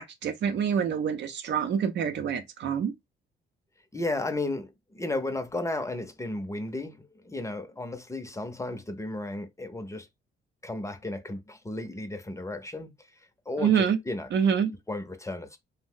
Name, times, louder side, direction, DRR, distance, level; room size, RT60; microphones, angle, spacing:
voice 1, 0.0-2.9 13.6-14.0 14.3-14.7, right 7 dB, 65° right, 0.6 m, -26 dB
voice 2, 3.9-10.1 10.6-14.3 14.9-15.6, left 2 dB, 15° left, 0.6 m, -34 dB
2.5 x 2.1 x 3.6 m
cardioid pair, 90°, 20 cm